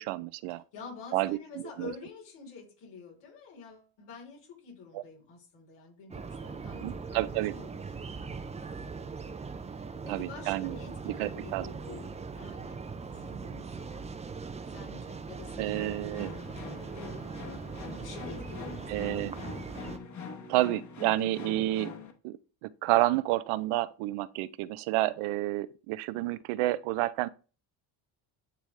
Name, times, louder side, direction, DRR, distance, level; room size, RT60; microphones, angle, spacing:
voice 1, 0.0-0.6 1.1-1.4 1.8-1.9 4.9-5.0 6.7-7.6 10.1-10.8 11.1-11.7 15.6-16.3 18.9-19.3 20.5-22.0 22.2-27.3, right 17 dB, 85° right, 0.6 m, -30 dB
voice 2, 0.7-7.2 7.5-8.1 9.9-14.1 14.6-16.9 17.8-19.3 21.1-21.4, left 4 dB, 85° left, 3.7 m, -48 dB
sound 1, 6.1-20.0, right 4 dB, 15° right, 0.3 m, -40 dB
sound 2, 15.7-22.1, left 5 dB, 35° left, 1.2 m, -44 dB
10.0 x 3.5 x 3.2 m
cardioid pair, 115°, 49 cm